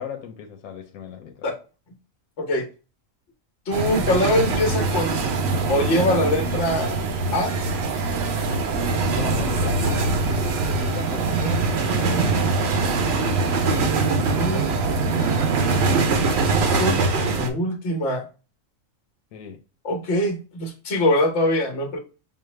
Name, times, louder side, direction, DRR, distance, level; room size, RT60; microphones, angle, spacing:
voice 1, 0.0-1.5 8.8-12.5 19.3-19.6, left 7 dB, 90° left, 1.0 m, -36 dB
voice 2, 3.7-5.4 5.7-7.0 7.3-7.5 14.2-14.7 16.5-18.2 19.8-22.0, left 1 dB, 60° left, 1.3 m, -23 dB
sound 1, 3.7-17.5, right 3 dB, 60° right, 0.8 m, -23 dB
sound 2, 3.7-16.2, right 7 dB, 85° right, 1.0 m, -33 dB
5.4 x 2.0 x 3.2 m
omnidirectional pair, 1.4 m